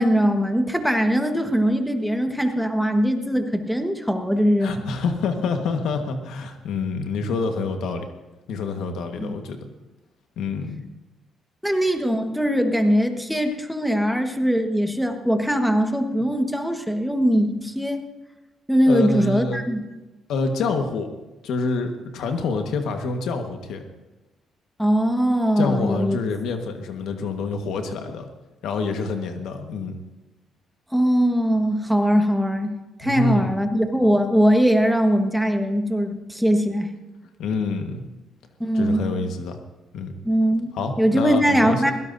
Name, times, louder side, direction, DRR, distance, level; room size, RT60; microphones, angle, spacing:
voice 1, 0.0-4.8 9.2-9.3 11.6-18.0 18.7-19.8 24.8-26.2 30.9-32.7 33.0-36.9 38.6-39.1 40.2-40.7 41.0-41.9, equal, ahead, 5 dB, 1.4 m, -21 dB
voice 2, 4.6-8.0 8.5-9.7 10.4-10.8 18.9-19.6 20.3-21.1 21.4-23.8 25.6-28.3 28.6-30.0 33.0-33.5 37.4-38.0 38.7-39.6 39.9-40.1 40.7-41.9, left 4 dB, 80° left, 5 dB, 1.4 m, -27 dB
21.5 x 16.5 x 2.7 m, 1.1 s
cardioid pair, 90°, 0 cm